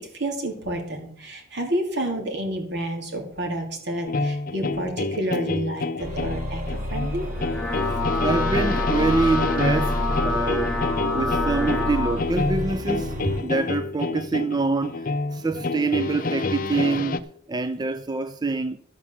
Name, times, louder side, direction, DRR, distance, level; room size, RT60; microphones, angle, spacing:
voice 1, 0.1-7.3, right 1 dB, 65° right, 3.0 m, -29 dB
sound 1, 4.1-17.2, left 3 dB, 45° left, 0.6 m, -28 dB
sound 2, 6.0-13.5, equal, 40° right, 3.3 m, -30 dB
sound 3, 7.3-12.2, left 3 dB, 5° left, 1.6 m, -28 dB
voice 2, 7.7-17.2 17.5-18.8, right 3 dB, 20° right, 0.4 m, -26 dB
13.0 x 6.0 x 7.0 m
head